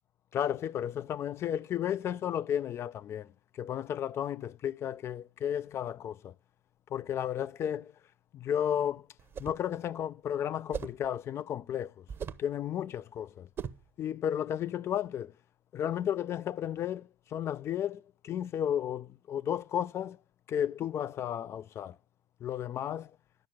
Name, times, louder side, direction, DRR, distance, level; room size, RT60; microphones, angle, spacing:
voice 1, 0.3-6.3 6.9-7.9 8.3-9.1 9.4-12.0 12.4-13.5 14.0-15.3 15.7-20.2 20.5-22.0 22.4-23.1, left 10 dB, 40° left, 0.5 m, -33 dB
sound 1, 9.2-9.7 10.7-11.1 12.1-12.5 13.6-13.9, right 7 dB, 35° right, 0.8 m, -39 dB
11.0 x 6.4 x 7.7 m
hypercardioid pair, 80°, 7 cm